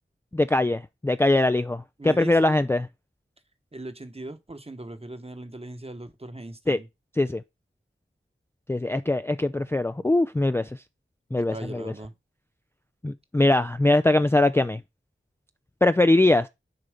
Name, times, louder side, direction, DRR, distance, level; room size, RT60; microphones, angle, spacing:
voice 1, 0.3-2.9 6.7-6.8 7.2-7.4 8.7-10.8 11.3-11.9 13.0-14.8 15.8-16.5, left 2 dB, 10° left, 0.3 m, -22 dB
voice 2, 2.0-2.6 3.7-6.9 11.3-12.1, right 2 dB, 30° right, 1.1 m, -39 dB
6.8 x 4.2 x 5.0 m
wide cardioid pair, 40°, 21 cm